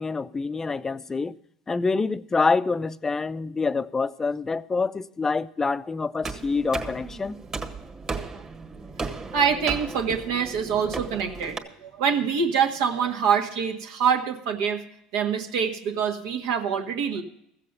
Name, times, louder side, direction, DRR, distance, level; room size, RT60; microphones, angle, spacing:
voice 1, 0.0-1.4 1.7-7.4, left 4 dB, 20° left, 0.5 m, -26 dB
sound 1, 6.2-11.6, right 4 dB, 25° right, 1.6 m, -35 dB
voice 2, 9.3-14.8 15.1-17.2, right 7 dB, 80° right, 1.6 m, -25 dB
15.0 x 7.5 x 6.7 m
supercardioid pair, 100°, 2 cm